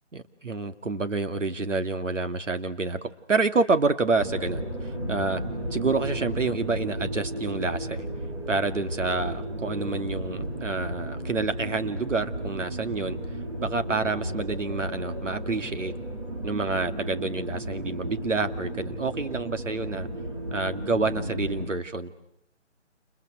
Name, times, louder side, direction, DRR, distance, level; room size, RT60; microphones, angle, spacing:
voice 1, 0.1-5.4 5.7-8.1 8.5-13.2 13.6-15.9 16.4-20.1 20.5-22.1, right 3 dB, 80° right, 9 dB, 2.4 m, -28 dB
sound 1, 4.2-21.7, right 1 dB, 25° right, 3.1 m, -34 dB
30.0 x 29.5 x 6.3 m, 0.78 s
hypercardioid pair, 180°, 37 cm